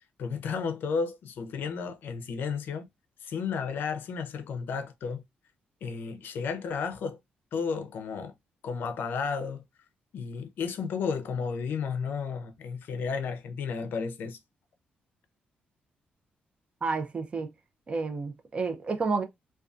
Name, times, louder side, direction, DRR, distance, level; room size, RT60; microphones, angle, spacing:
voice 1, 0.2-2.9 3.2-5.2 5.8-7.2 7.5-8.3 8.6-9.6 10.1-14.4, left 5 dB, 70° left, 0.5 m, -33 dB
voice 2, 16.8-17.5 17.9-19.2, right 4 dB, 35° right, 0.5 m, -30 dB
2.5 x 2.3 x 2.3 m
cardioid pair, 125°, 4 cm